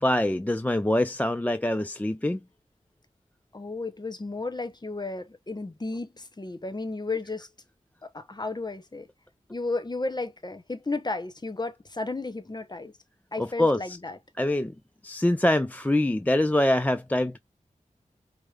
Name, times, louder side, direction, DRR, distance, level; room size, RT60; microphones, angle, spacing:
voice 1, 0.0-2.4 13.4-14.0 14.4-14.7 15.0-17.4, left 1 dB, 10° left, 0.3 m, -24 dB
voice 2, 3.5-7.5 8.0-9.1 9.5-12.9 13.3-14.2, left 3 dB, 30° left, 0.9 m, -33 dB
4.8 x 2.1 x 3.2 m
wide cardioid pair, 70°, 14 cm